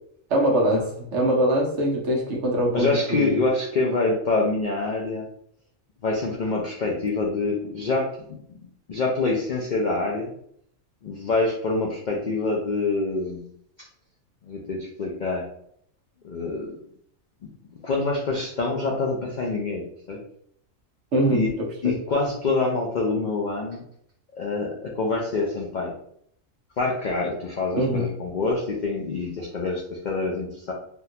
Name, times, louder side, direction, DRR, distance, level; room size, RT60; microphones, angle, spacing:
voice 1, 0.3-3.4 21.1-22.0 27.7-28.1, right 1 dB, 60° right, 0 dB, 1.0 m, -23 dB
voice 2, 2.7-5.2 6.0-8.6 8.9-10.3 11.0-13.4 14.4-15.5 16.2-16.8 17.4-17.5 17.8-20.2 21.3-21.5 21.8-23.8 24.3-25.9 26.8-30.7, left 3 dB, 65° left, -2 dB, 0.4 m, -26 dB
3.6 x 2.3 x 2.7 m, 0.67 s
omnidirectional pair, 1.4 m